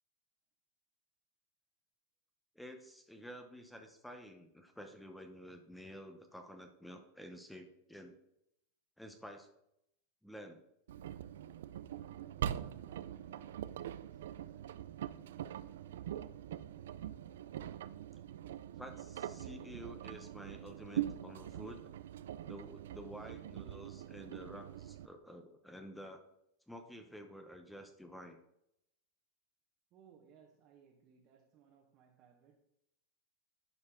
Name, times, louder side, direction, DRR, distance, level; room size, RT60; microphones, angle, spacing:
voice 1, 2.5-8.2 9.0-9.5 10.2-10.6 18.8-21.9 22.4-26.2 26.7-28.4, equal, 5° left, 0.8 m, -51 dB
Engine, 10.9-25.1, right 11 dB, 85° right, 0.3 m, -43 dB
voice 2, 11.9-15.0 29.9-32.6, right 7 dB, 40° right, 1.1 m, -64 dB
11.0 x 4.4 x 3.7 m
supercardioid pair, 135°, 0 cm